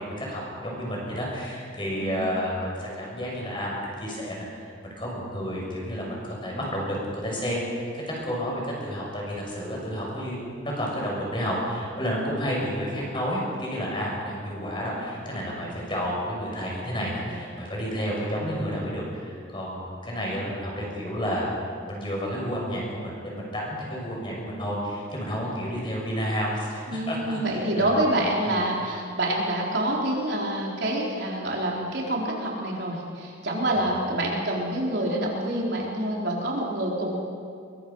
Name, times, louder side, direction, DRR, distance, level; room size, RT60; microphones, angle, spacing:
voice 1, 0.0-21.5 21.8-27.4 27.8-28.0 28.4-28.6 33.8-33.9, equal, 25° left, -3 dB, 6.6 m, -31 dB
voice 2, 2.0-2.4 26.9-37.2, right 1 dB, 60° right, -3 dB, 4.4 m, -27 dB
24.0 x 23.0 x 5.7 m, 2.3 s
head